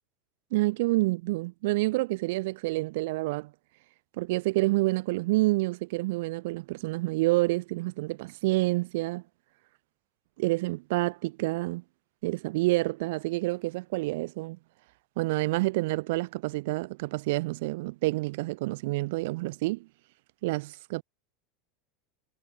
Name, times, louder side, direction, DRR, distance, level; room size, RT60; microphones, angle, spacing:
voice 1, 0.5-3.5 4.2-9.2 10.4-11.8 12.2-14.6 15.2-19.9 20.4-21.0, right 21 dB, 75° right, 2.2 m, -28 dB
supercardioid pair, 105°, 0 cm